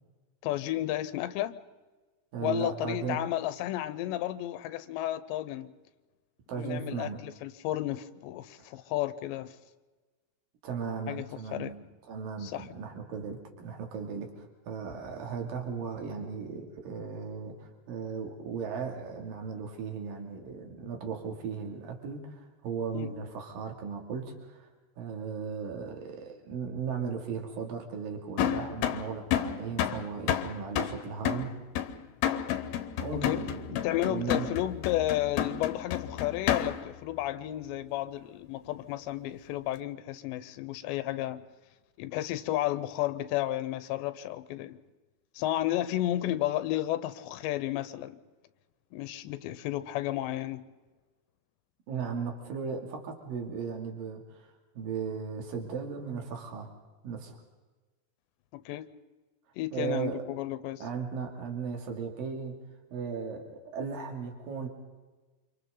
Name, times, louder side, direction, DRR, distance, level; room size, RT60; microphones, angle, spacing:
voice 1, 0.4-1.6 2.4-5.7 6.5-9.6 11.1-11.7 12.4-12.7 22.9-23.1 33.1-33.4 33.7-41.4 42.0-44.8 45.4-48.2 48.9-50.6 58.5-58.8 59.6-60.8, left 14 dB, 90° left, 12 dB, 3.1 m, -32 dB
voice 2, 2.3-3.2 6.5-7.2 8.6-8.7 10.6-11.8 12.0-24.7 25.0-31.5 33.0-34.5 51.9-54.5 54.7-56.7 57.0-57.4 59.7-60.2 60.8-62.6 62.9-64.7, right 6 dB, 55° right, 2 dB, 4.2 m, -36 dB
sound 1, 28.4-37.0, left 10 dB, 70° left, 2.8 m, -31 dB
29.5 x 27.0 x 4.0 m, 1.2 s
omnidirectional pair, 4.9 m